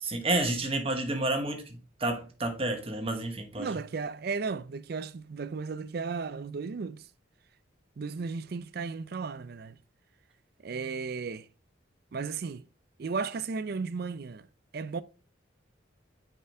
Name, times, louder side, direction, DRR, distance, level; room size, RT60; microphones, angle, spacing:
voice 1, 0.0-3.7, right 2 dB, 30° right, 1.1 m, -30 dB
voice 2, 3.6-7.0 8.0-9.8 10.6-11.5 12.1-12.6 13.0-14.5 14.7-15.0, right 4 dB, 55° right, 0.4 m, -35 dB
6.7 x 5.1 x 3.3 m
head